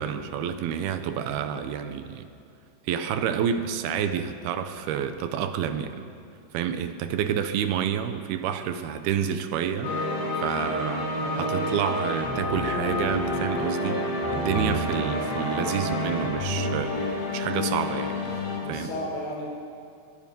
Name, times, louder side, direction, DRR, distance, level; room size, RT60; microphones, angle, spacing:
voice 1, 0.0-2.3 2.9-6.1 6.5-10.0 10.4-11.1 11.4-14.0 14.3-17.0 17.3-18.2 18.7-18.9, right 8 dB, 80° right, 9 dB, 2.9 m, -29 dB
sound 1, 9.8-18.6, left 1 dB, 75° left, 5.5 m, -28 dB
voice 2, 11.1-11.5 18.0-18.2 18.6-19.5, left 1 dB, 90° left, -3 dB, 7.4 m, -35 dB
23.0 x 22.0 x 5.4 m, 2.4 s
omnidirectional pair, 4.5 m